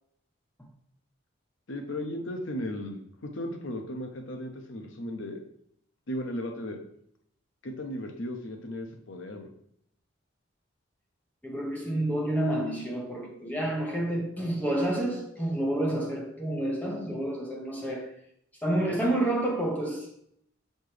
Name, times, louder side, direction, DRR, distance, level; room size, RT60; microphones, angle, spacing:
voice 1, 1.7-5.4 6.1-6.8 7.6-9.5, left 1 dB, 70° left, 0.8 m, -36 dB
voice 2, 11.4-18.1 18.6-20.1, right 1 dB, 10° left, 0.7 m, -29 dB
6.9 x 4.3 x 3.2 m
head